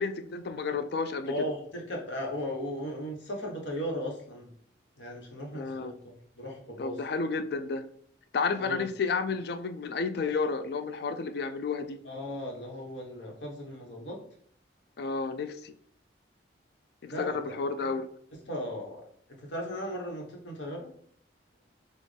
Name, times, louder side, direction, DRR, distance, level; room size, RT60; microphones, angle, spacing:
voice 1, 0.0-1.5 5.5-5.9 6.8-7.8 8.3-12.0 15.0-15.7 17.2-18.1, left 4 dB, 55° left, 9 dB, 0.4 m, -31 dB
voice 2, 1.3-4.5 5.0-7.0 8.6-8.9 12.0-14.2 17.0-17.5 18.3-19.0 19.4-20.9, equal, 75° left, -1 dB, 1.3 m, -37 dB
6.3 x 2.4 x 3.4 m, 0.63 s
head